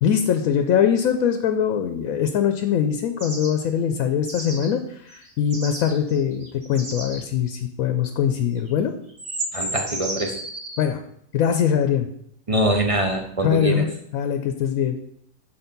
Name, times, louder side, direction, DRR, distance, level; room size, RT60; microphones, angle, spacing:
voice 1, 0.0-8.9 10.8-11.0 11.3-12.1 13.4-13.9 14.1-15.0, left 8 dB, 80° left, 7 dB, 1.0 m, -22 dB
sound 1, 3.2-3.5 4.3-4.7 5.1-7.2 8.6-8.7 9.1-10.8, right 1 dB, 55° right, 2.1 m, -32 dB
voice 2, 9.5-10.3 12.5-13.8, right 1 dB, 35° right, 3 dB, 0.6 m, -23 dB
7.0 x 4.4 x 5.3 m, 0.70 s
omnidirectional pair, 1.5 m